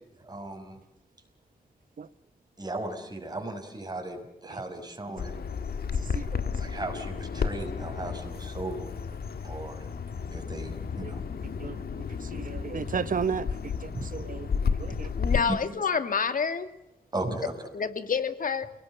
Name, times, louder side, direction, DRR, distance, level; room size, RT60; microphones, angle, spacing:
voice 1, 0.2-0.8 2.6-5.3 6.6-8.9 9.4-9.9 10.3-11.2 13.9-14.0 14.9-15.0 15.5-15.6 17.1-17.5, right 2 dB, 25° right, 6.1 m, -36 dB
Bird vocalization bird call bird song, 5.2-15.4, left 6 dB, 85° left, 1.8 m, -32 dB
voice 2, 12.3-13.5 13.8-14.5 14.8-15.1, right 6 dB, 60° right, 1.3 m, -33 dB
voice 3, 15.2-16.7 17.7-18.7, left 6 dB, 60° left, 2.3 m, -28 dB
29.5 x 19.0 x 8.0 m
wide cardioid pair, 120°, 15 cm